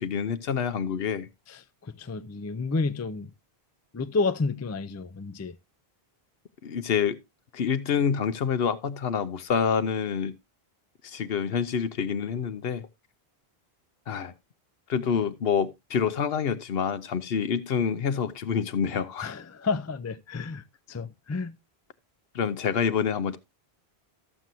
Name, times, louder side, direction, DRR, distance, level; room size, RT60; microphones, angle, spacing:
voice 1, 0.0-1.3 6.6-7.2 7.5-10.4 11.0-12.9 14.1-14.3 14.9-19.3 22.3-23.4, left 7 dB, 70° left, 1.0 m, -27 dB
voice 2, 1.5-3.3 3.9-5.6 19.2-21.5, left 4 dB, 25° left, 0.3 m, -31 dB
13.5 x 7.6 x 2.7 m
omnidirectional pair, 1.1 m